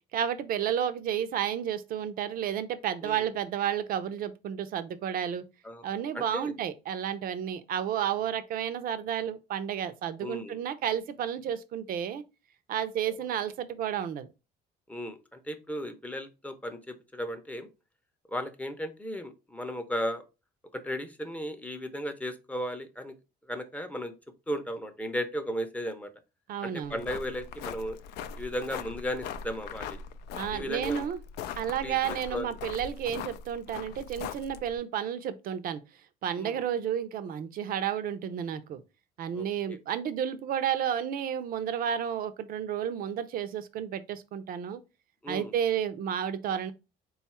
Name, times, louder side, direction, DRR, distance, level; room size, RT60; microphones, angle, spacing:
voice 1, 0.1-5.4 5.8-12.2 12.7-14.3 26.5-27.0 30.3-31.2 31.6-35.8 36.2-38.8 39.2-44.8 45.3-46.7, right 9 dB, 60° right, 0.5 m, -31 dB
voice 2, 6.1-6.5 10.2-10.6 13.1-13.2 14.9-17.7 18.3-20.2 20.7-23.2 23.5-24.1 24.5-26.1 26.6-28.0 28.4-30.0 30.5-31.1 31.8-32.0 32.3-32.6 36.4-36.7 39.3-39.8 45.2-45.5, equal, 10° left, 0.6 m, -35 dB
sound 1, 26.8-34.8, left 7 dB, 80° left, 0.4 m, -41 dB
3.7 x 2.4 x 4.2 m
cardioid pair, 110°, 17 cm